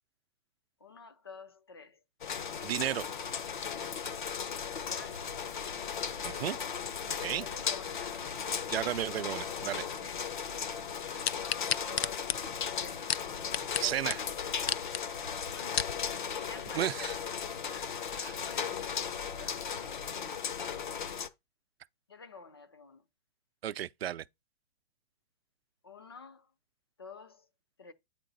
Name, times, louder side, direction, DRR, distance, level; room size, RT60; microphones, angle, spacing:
voice 1, 0.8-2.0 2.6-3.0 4.7-5.6 5.9-6.3 7.4-8.6 10.0-10.3 11.1-12.4 12.8-13.1 13.7-14.2 15.5-17.3 17.7-21.1 22.1-23.0 25.8-26.5 27.0-27.5 27.8-27.9, left 5 dB, 25° left, 0.4 m, -51 dB
sound 1, 2.2-21.3, left 7 dB, 50° left, 0.8 m, -37 dB
voice 2, 2.6-3.1 6.2-6.6 7.1-7.5 8.7-9.9 13.8-14.2 16.7-17.1 18.2-18.4 19.4-19.5 23.6-24.3, right 11 dB, 75° right, 0.5 m, -33 dB
sound 2, 11.2-13.8 14.1-14.2 14.6-15.0 15.5-16.0 16.6-16.7, left 9 dB, 80° left, 0.6 m, -32 dB
8.8 x 4.7 x 3.9 m
hypercardioid pair, 180°, 31 cm